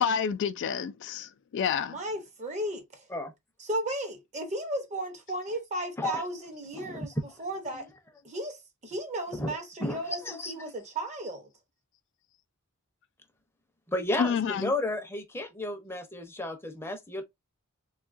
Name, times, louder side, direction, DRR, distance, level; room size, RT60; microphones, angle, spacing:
voice 1, 0.0-2.0 14.2-14.7, left 7 dB, 55° left, 0.3 m, -29 dB
voice 2, 1.9-3.1 3.6-7.9 8.2-11.5, right 1 dB, 30° right, 0.7 m, -35 dB
voice 3, 6.7-7.1 9.4-10.0 10.2-10.5 13.9-17.2, left 2 dB, 10° left, 0.6 m, -33 dB
3.5 x 2.3 x 2.5 m
head